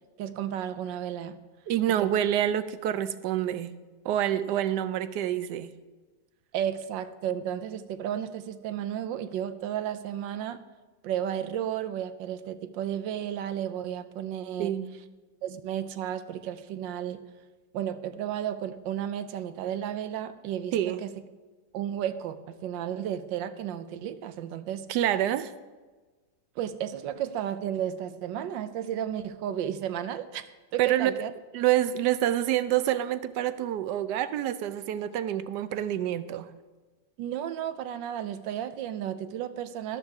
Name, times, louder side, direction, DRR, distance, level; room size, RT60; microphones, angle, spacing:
voice 1, 0.2-1.4 1.9-2.1 6.5-10.6 11.0-14.8 15.4-17.2 17.7-21.2 21.7-24.9 26.6-30.4 30.7-31.3 37.2-40.0, right 10 dB, 85° right, 1.4 m, -33 dB
voice 2, 1.7-3.7 4.0-5.7 14.6-14.9 20.7-21.0 24.9-25.5 30.8-31.1 31.5-36.5, right 12 dB, 70° right, 1.2 m, -27 dB
13.0 x 12.5 x 3.5 m
omnidirectional pair, 2.0 m